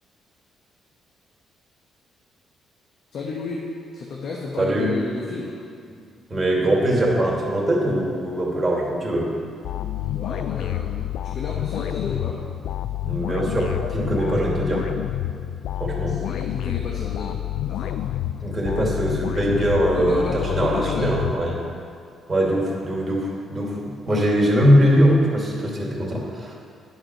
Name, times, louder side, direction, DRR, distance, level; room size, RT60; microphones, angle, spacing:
voice 1, 3.1-3.6 3.9-5.5 9.7-12.4 16.1-17.4 17.6-18.1 19.9-21.2, left 4 dB, 60° left, -2 dB, 1.1 m, -32 dB
voice 2, 4.6-4.9 6.3-9.3 13.0-14.8 15.8-16.2 18.4-21.6 22.3-26.5, equal, 25° right, -3 dB, 2.3 m, -21 dB
sound 1, 9.6-21.9, left 12 dB, 85° left, 0.3 m, -28 dB
10.5 x 4.9 x 6.0 m, 2.4 s
cardioid pair, 90°, 0 cm